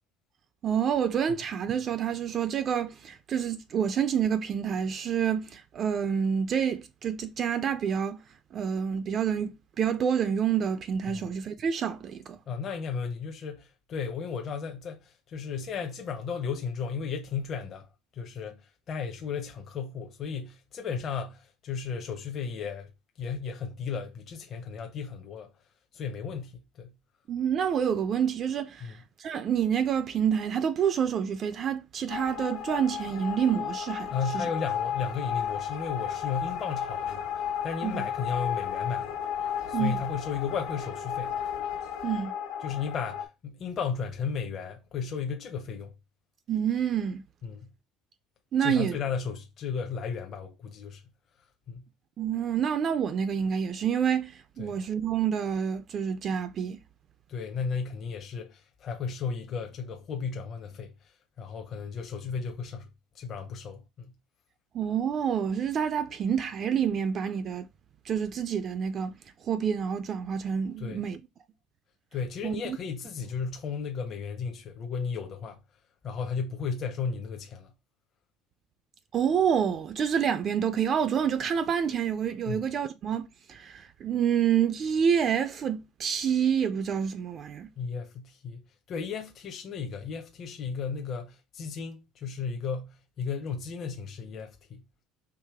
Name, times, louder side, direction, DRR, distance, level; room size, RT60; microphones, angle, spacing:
voice 1, 0.6-8.2 8.5-12.4 27.3-34.5 37.8-38.0 39.7-39.9 42.0-42.3 46.5-47.2 48.5-49.0 52.2-56.8 64.7-67.7 68.1-69.1 69.5-71.2 72.4-72.8 79.1-87.7, right 8 dB, 35° right, 0.3 m, -28 dB
voice 2, 12.5-17.9 18.1-18.6 18.9-22.9 23.2-25.5 25.9-26.9 28.8-28.9 34.1-39.1 39.7-41.3 42.6-45.9 47.4-47.7 48.6-51.0 51.7-51.9 54.6-54.8 57.3-60.9 61.4-62.9 63.1-64.1 70.8-71.1 72.1-75.6 76.0-77.7 82.5-82.6 87.8-94.8, left 6 dB, 35° left, 0.6 m, -34 dB
sound 1, 32.1-43.3, left 9 dB, 70° left, 1.2 m, -33 dB
4.8 x 3.0 x 3.4 m
cardioid pair, 155°, 0 cm